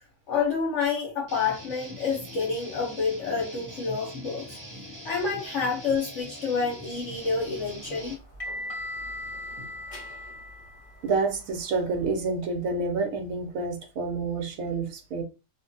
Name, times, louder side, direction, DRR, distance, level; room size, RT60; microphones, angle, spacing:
voice 1, 0.3-4.6 5.0-8.2, left 5 dB, 65° left, 1.2 m, -28 dB
Guitar, 1.3-8.1, equal, 25° right, 0.4 m, -42 dB
sound 1, 7.3-12.1, left 1 dB, 30° left, 1.0 m, -39 dB
voice 2, 11.0-15.2, right 4 dB, 80° right, 1.1 m, -28 dB
2.7 x 2.6 x 2.7 m
omnidirectional pair, 1.4 m